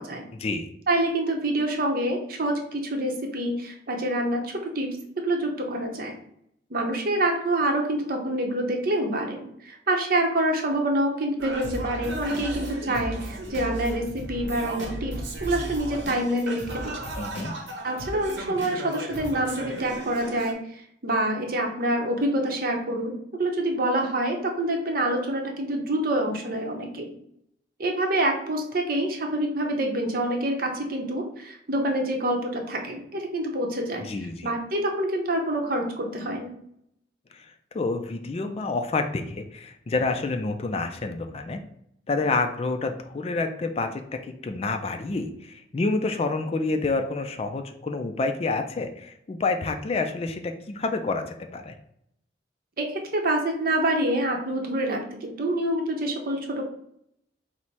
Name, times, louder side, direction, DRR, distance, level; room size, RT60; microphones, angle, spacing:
voice 1, 0.3-0.7 17.2-17.5 34.0-34.5 37.3-41.6 42.1-51.8, left 3 dB, 35° left, 7 dB, 0.3 m, -28 dB
voice 2, 0.9-4.9 5.2-6.2 6.7-15.1 15.4-17.1 17.8-23.1 23.4-27.1 27.8-34.1 34.4-36.6 52.8-56.7, right 1 dB, 50° right, 2 dB, 0.7 m, -26 dB
Singing, 11.4-20.5, right 1 dB, 80° right, 0.8 m, -35 dB
4.1 x 2.1 x 4.5 m, 0.73 s
head